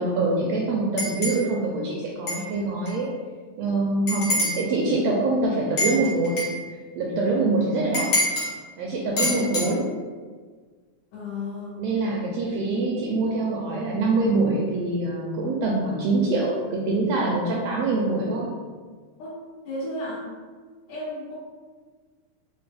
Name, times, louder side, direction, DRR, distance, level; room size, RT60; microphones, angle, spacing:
voice 1, 0.0-3.1 3.6-6.3 7.0-8.0 8.8-9.8 11.8-18.5, right 2 dB, 80° right, -3 dB, 1.5 m, -24 dB
sound 1, 1.0-1.4 2.3-2.4 2.9-3.0 4.1-4.6 5.8-6.6 7.9-8.5 9.2-9.7, left 1 dB, 60° left, 1.0 m, -25 dB
voice 2, 11.1-11.8 19.2-19.4 19.7-20.3 20.9-21.4, left 1 dB, 85° left, -11 dB, 2.3 m, -33 dB
5.1 x 2.1 x 3.3 m, 1.5 s
omnidirectional pair, 3.3 m